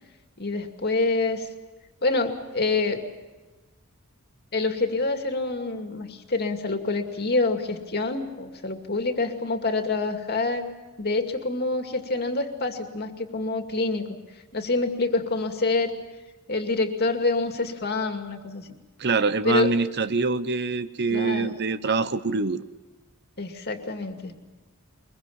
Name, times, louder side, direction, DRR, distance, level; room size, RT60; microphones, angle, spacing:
voice 1, 0.4-1.5 2.0-3.0 4.5-10.7 11.0-14.2 14.5-15.9 16.5-18.7 19.4-19.7 21.1-21.5 23.4-24.3, left 3 dB, 45° left, 5 dB, 2.4 m, -26 dB
voice 2, 19.0-22.6, right 4 dB, 50° right, 13 dB, 0.9 m, -25 dB
23.0 x 22.0 x 7.2 m, 1.2 s
head